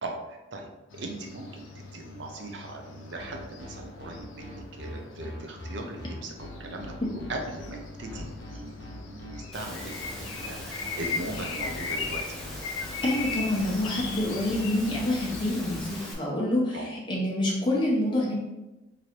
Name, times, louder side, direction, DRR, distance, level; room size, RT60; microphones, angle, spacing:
voice 1, 0.0-12.4 16.7-16.9, right 2 dB, 60° right, 2 dB, 0.5 m, -39 dB
sound 1, 0.9-16.1, left 4 dB, 80° left, 0.5 m, -39 dB
sound 2, 3.2-15.8, left 1 dB, 60° left, 0.9 m, -43 dB
Engine / Mechanisms, 9.5-16.1, left 1 dB, ahead, 0.6 m, -41 dB
voice 2, 13.0-18.4, left 1 dB, 25° left, -4 dB, 0.8 m, -27 dB
3.1 x 2.6 x 4.4 m, 1.0 s
head